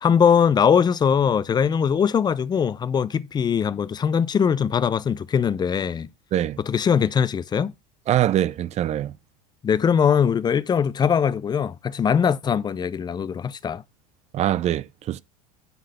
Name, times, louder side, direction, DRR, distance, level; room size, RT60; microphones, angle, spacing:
voice 1, 0.0-6.1 6.6-7.7 9.6-13.8, left 7 dB, 20° left, 0.5 m, -21 dB
voice 2, 8.1-9.1 14.3-15.2, right 12 dB, 35° right, 0.5 m, -23 dB
9.3 x 3.9 x 5.4 m
hypercardioid pair, 90°, 19 cm